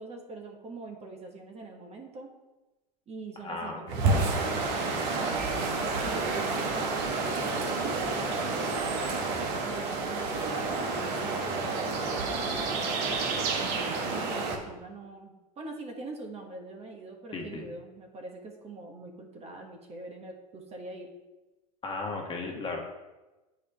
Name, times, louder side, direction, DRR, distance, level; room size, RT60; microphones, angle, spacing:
voice 1, 0.0-2.3 3.1-4.8 5.2-8.8 9.6-13.0 13.4-21.1, right 2 dB, 30° right, 2 dB, 1.2 m, -43 dB
voice 2, 3.4-4.0 12.2-12.4 17.3-17.6 21.8-22.8, left 3 dB, 25° left, 1 dB, 1.5 m, -35 dB
sound 1, 3.9-14.6, right 3 dB, 55° right, 1.4 m, -29 dB
8.2 x 4.9 x 3.4 m, 1.1 s
hypercardioid pair, 100°, 21 cm